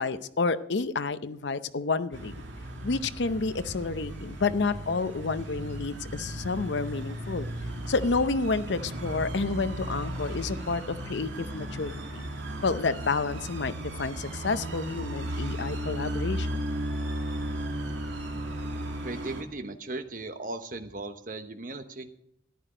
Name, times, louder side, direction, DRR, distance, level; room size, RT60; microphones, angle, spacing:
voice 1, 0.0-2.3 2.8-7.5 7.9-12.2 12.6-16.6, left 4 dB, 70° left, 13 dB, 0.6 m, -30 dB
sound 1, 2.1-19.4, right 1 dB, 85° right, 2.1 m, -35 dB
voice 2, 19.0-22.1, right 2 dB, 45° right, 8 dB, 1.0 m, -37 dB
14.0 x 11.0 x 5.0 m, 0.72 s
head